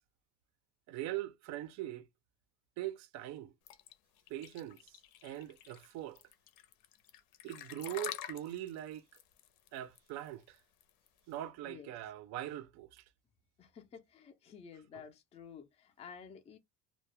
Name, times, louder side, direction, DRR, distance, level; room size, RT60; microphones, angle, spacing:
voice 1, 0.9-2.1 2.8-3.5 4.3-6.2 7.4-9.1 9.7-10.6 11.3-13.0 14.9-15.0, right 13 dB, 50° right, 0.4 m, -42 dB
sound 1, 3.7-11.3, left 11 dB, 80° left, 0.6 m, -48 dB
voice 2, 13.6-16.6, left 6 dB, 20° left, 0.3 m, -52 dB
2.2 x 2.0 x 2.9 m
cardioid pair, 160°, 35 cm